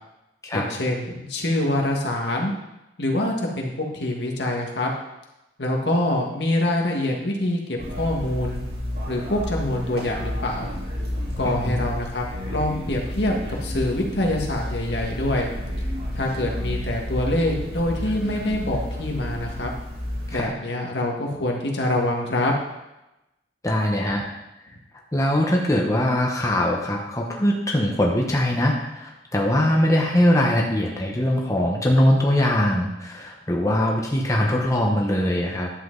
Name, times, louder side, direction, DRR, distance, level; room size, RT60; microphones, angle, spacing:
voice 1, 0.5-2.5 3.0-4.9 5.6-8.6 9.1-10.7 11.4-15.5 16.1-19.7 20.3-22.5, left 1 dB, 75° left, 0 dB, 1.8 m, -25 dB
sound 1, 7.8-20.5, left 1 dB, 60° right, 3.0 m, -31 dB
voice 2, 11.4-11.8 20.3-20.5 23.6-24.3 25.1-35.7, left 1 dB, 20° left, -1 dB, 1.1 m, -22 dB
11.0 x 7.7 x 4.0 m, 0.95 s
head